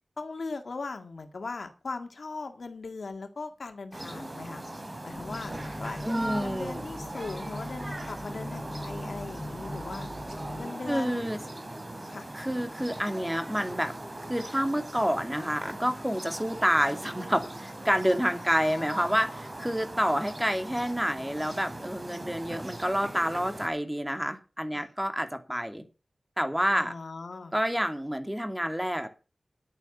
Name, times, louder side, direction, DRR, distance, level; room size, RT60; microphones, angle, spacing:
voice 1, 0.2-4.6 5.0-10.1 10.6-11.3 12.1-12.3 18.2-19.1 24.7-24.9 26.7-27.5, left 3 dB, 85° left, 6 dB, 1.9 m, -39 dB
sound 1, 3.9-23.7, right 1 dB, 40° right, 3.8 m, -40 dB
sound 2, 5.1-10.7, left 1 dB, 10° left, 2.1 m, -41 dB
voice 2, 6.0-6.8 10.9-11.4 12.3-14.0 14.3-25.8 26.4-26.9 27.5-29.1, equal, 10° right, 7 dB, 2.7 m, -28 dB
11.0 x 9.2 x 7.1 m, 0.32 s
wide cardioid pair, 45°, 0 cm